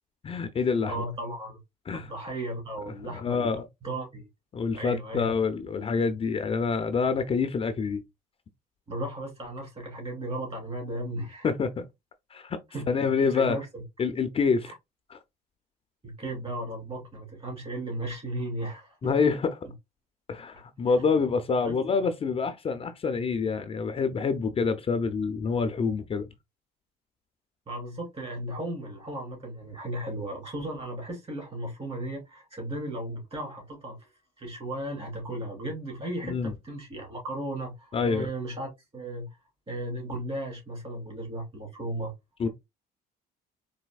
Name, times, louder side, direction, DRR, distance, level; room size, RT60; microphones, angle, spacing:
voice 1, 0.2-1.0 1.9-2.1 3.1-3.6 4.5-8.0 11.4-11.9 12.3-12.6 12.9-13.6 14.0-14.7 15.1-15.2 19.0-19.6 20.3-26.2 36.2-36.5 37.9-38.3 42.4-42.5, left 5 dB, 35° left, 0.5 m, -27 dB
voice 2, 0.9-1.6 1.9-3.5 3.8-4.3 4.7-5.3 8.9-11.5 12.7-12.9 13.2-13.8 14.6-14.7 16.0-19.1 20.9-21.0 21.6-22.1 27.7-34.1 34.4-39.3 39.7-42.1, right 1 dB, 35° right, 2.5 m, -35 dB
4.1 x 2.7 x 2.3 m
cardioid pair, 110°, 17 cm